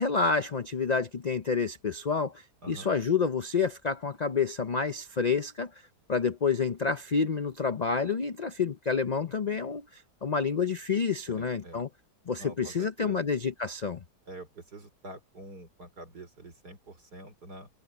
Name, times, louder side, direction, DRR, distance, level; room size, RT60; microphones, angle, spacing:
voice 1, 0.0-5.7 6.1-11.9 12.3-14.0, left 5 dB, 85° left, 0.3 m, -29 dB
voice 2, 2.6-2.9 11.3-11.8 12.4-13.3 14.3-17.7, right 1 dB, 70° right, 5.0 m, -46 dB
omnidirectional pair, 1.8 m